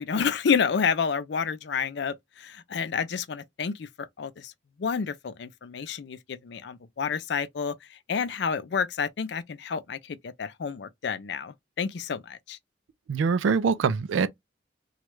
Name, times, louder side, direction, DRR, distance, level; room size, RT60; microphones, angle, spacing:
voice 1, 0.0-3.9 4.2-4.5 4.8-12.6, left 6 dB, 60° left, 0.4 m, -29 dB
voice 2, 13.1-14.3, right 5 dB, 85° right, 0.4 m, -24 dB
3.1 x 2.3 x 3.0 m
head